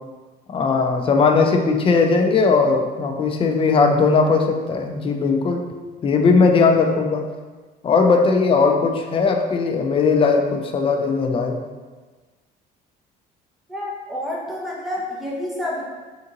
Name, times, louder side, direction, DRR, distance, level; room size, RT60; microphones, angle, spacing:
voice 1, 0.5-5.7 6.0-7.3 7.8-11.6, left 4 dB, 30° left, 4 dB, 0.4 m, -18 dB
voice 2, 13.7-15.8, left 1 dB, ahead, -5 dB, 0.8 m, -29 dB
3.6 x 2.5 x 2.8 m, 1.3 s
cardioid pair, 110°, 17 cm